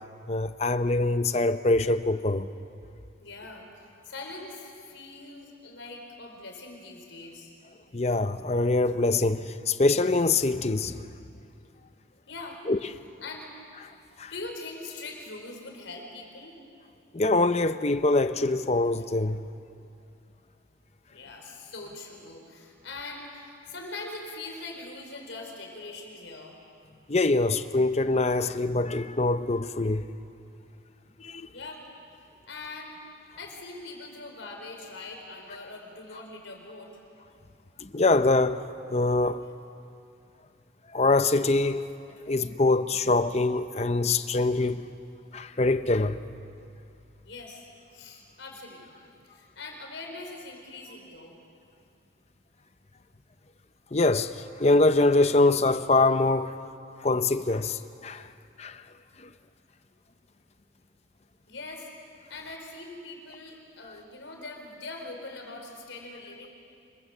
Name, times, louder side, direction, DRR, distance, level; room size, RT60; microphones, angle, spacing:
voice 1, 0.3-2.5 7.9-11.0 12.7-12.8 14.2-14.3 17.1-19.4 27.1-30.1 31.2-31.5 37.8-39.4 40.9-41.9 42.3-44.9 45.3-46.2 53.9-56.6 57.0-58.3 58.6-58.8 59.2-59.3, left 2 dB, 35° left, 0.7 m, -24 dB
voice 2, 3.2-7.5 12.3-12.6 13.2-13.5 14.3-16.5 21.1-26.6 31.5-31.8 32.5-33.0 33.4-37.0 47.2-51.4 61.5-61.9 62.3-66.5, left 2 dB, 80° left, 4.6 m, -42 dB
26.5 x 23.0 x 7.3 m
head